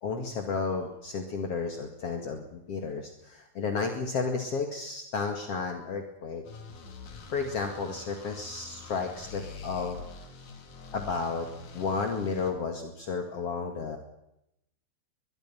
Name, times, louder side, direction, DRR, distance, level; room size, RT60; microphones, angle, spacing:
voice 1, 0.0-6.4 7.3-10.0 10.9-11.5 11.7-14.0, left 4 dB, 55° left, 3 dB, 3.1 m, -32 dB
sound 1, 6.4-12.5, left 4 dB, 80° left, 4.1 m, -45 dB
23.0 x 22.5 x 5.9 m, 0.80 s
omnidirectional pair, 3.4 m